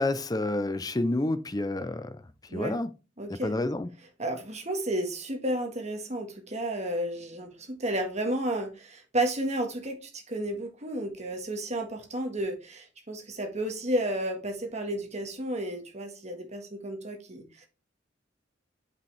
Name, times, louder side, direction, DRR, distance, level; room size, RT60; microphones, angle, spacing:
voice 1, 0.0-2.2 2.5-2.9 3.3-3.9, left 2 dB, 20° left, 0.6 m, -29 dB
voice 2, 2.5-2.8 3.2-3.6 4.2-17.7, right 1 dB, 35° right, 1.6 m, -32 dB
8.0 x 5.4 x 3.4 m
head